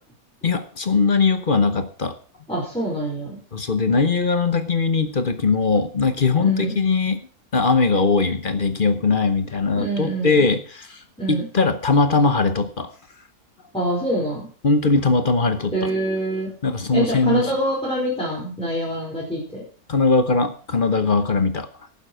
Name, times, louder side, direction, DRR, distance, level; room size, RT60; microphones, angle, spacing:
voice 1, 0.4-2.2 3.5-7.3 7.5-12.9 14.6-15.7 16.6-17.5 19.9-21.7, left 4 dB, 35° left, 10 dB, 1.0 m, -20 dB
voice 2, 2.5-3.4 6.4-6.8 9.8-10.4 11.2-11.4 13.7-14.5 15.7-16.5 16.9-19.6, right 1 dB, 5° left, -6 dB, 4.8 m, -25 dB
11.5 x 9.2 x 6.2 m, 0.42 s
omnidirectional pair, 1.7 m